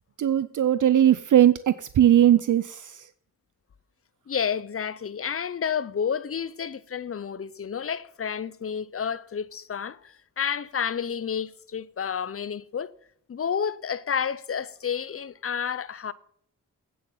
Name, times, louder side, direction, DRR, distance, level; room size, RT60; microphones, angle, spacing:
voice 1, 0.2-3.0, right 11 dB, 65° right, 0.4 m, -19 dB
voice 2, 4.3-12.9 13.3-16.1, left 7 dB, 45° left, 0.6 m, -30 dB
9.0 x 7.7 x 5.5 m
wide cardioid pair, 85°, 33 cm